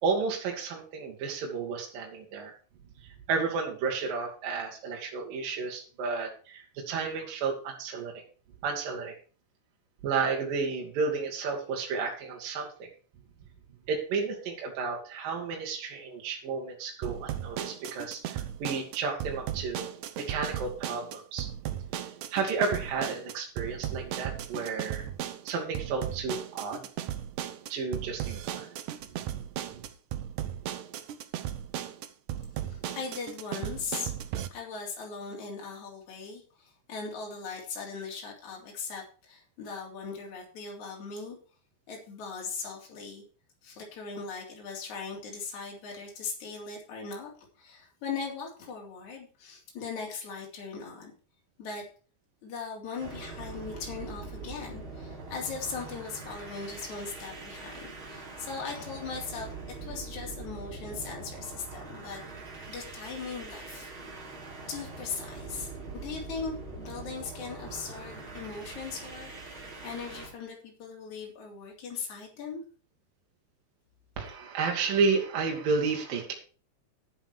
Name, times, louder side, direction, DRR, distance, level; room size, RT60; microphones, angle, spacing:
voice 1, 0.0-2.5 3.3-8.2 8.6-9.2 10.0-12.9 13.9-19.9 20.2-21.5 22.3-25.1 25.5-26.9 27.7-28.7 29.3-29.4 29.7-29.9 74.2-76.3, right 4 dB, 60° right, 1 dB, 3.6 m, -32 dB
sound 1, 17.0-34.5, right 11 dB, 90° right, 1.7 m, -36 dB
voice 2, 32.7-34.1 34.5-41.4 41.9-43.2 43.6-51.1 51.6-51.8 52.4-59.5 59.8-63.9 64.7-69.3 69.8-72.6, left 5 dB, 45° left, -1 dB, 4.5 m, -39 dB
sound 2, 53.0-70.3, right 3 dB, 35° right, 3.4 m, -43 dB
11.5 x 9.0 x 4.7 m, 0.37 s
omnidirectional pair, 4.9 m